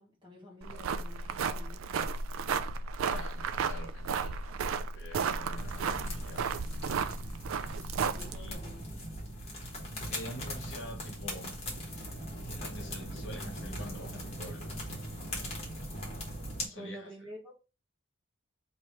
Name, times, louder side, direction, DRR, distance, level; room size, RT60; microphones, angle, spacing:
voice 1, 0.0-1.9 7.9-8.8 16.7-17.6, equal, 25° right, 1.7 m, -49 dB
sound 1, 0.6-8.5, right 5 dB, 75° right, 0.4 m, -33 dB
voice 2, 1.2-1.6 3.0-4.6 4.9-6.4 8.3-8.6 10.1-11.5 12.4-14.7 16.6-17.1, equal, 60° left, 1.3 m, -46 dB
sound 2, 5.5-16.7, equal, 30° left, 1.3 m, -40 dB
3.3 x 2.9 x 4.6 m
head